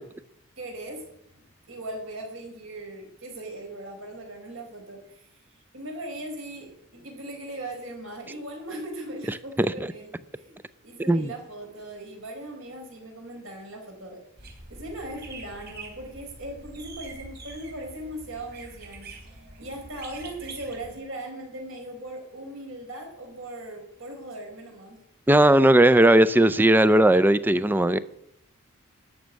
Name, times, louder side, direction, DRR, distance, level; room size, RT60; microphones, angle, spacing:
voice 1, 0.6-1.0 1.7-5.3 5.7-14.3 14.7-25.0, right 1 dB, 65° right, 4.7 m, -39 dB
sound 1, 14.4-21.0, right 2 dB, 50° right, 3.8 m, -45 dB
voice 2, 25.3-28.0, right 1 dB, 10° right, 0.4 m, -17 dB
13.0 x 6.4 x 9.4 m
head